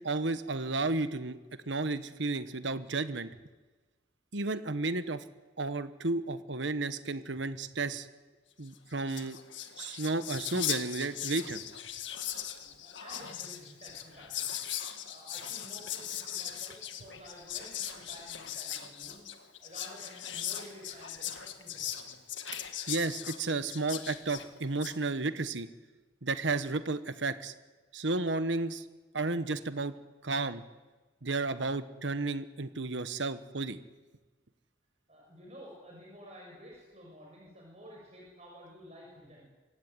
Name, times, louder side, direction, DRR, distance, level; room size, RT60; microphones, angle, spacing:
voice 1, 0.0-1.4 1.7-3.3 4.3-5.2 5.6-8.1 8.6-9.4 9.8-11.6 22.9-25.7 26.2-27.5 27.9-28.8 29.1-29.9 30.2-30.6 31.2-33.8, right 3 dB, 75° right, 12 dB, 1.3 m, -32 dB
Whispering, 8.7-8.8 9.0-25.0, left 10 dB, 80° left, 1.8 m, -39 dB
voice 2, 12.6-14.7 15.0-22.2 35.1-39.5, equal, 35° right, -3 dB, 6.2 m, -52 dB
25.0 x 16.5 x 9.3 m, 1.2 s
head